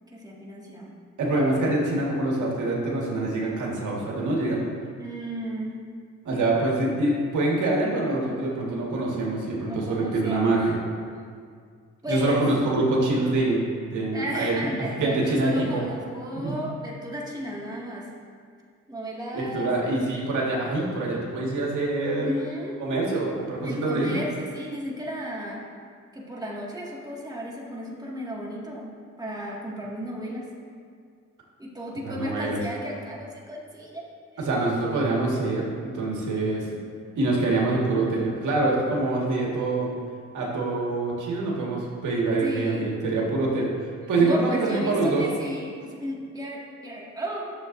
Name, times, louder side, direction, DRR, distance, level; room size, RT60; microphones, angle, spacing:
voice 1, 0.1-0.9 5.0-5.8 9.7-10.6 12.0-12.4 14.1-18.1 18.9-19.7 22.2-22.8 23.6-25.6 26.1-28.9 29.2-30.5 31.6-34.1 34.3-34.5 42.4-43.0 44.2-47.4, equal, 15° right, -4 dB, 2.0 m, -34 dB
voice 2, 1.2-4.6 6.2-10.8 12.1-14.6 15.0-15.8 16.3-16.6 19.3-22.3 22.8-24.2 32.0-32.6 34.4-36.7 37.2-39.9 40.3-43.7 44.1-45.2, right 2 dB, 80° right, -3 dB, 1.7 m, -25 dB
11.0 x 7.0 x 2.6 m, 2.1 s
cardioid pair, 65°, 30 cm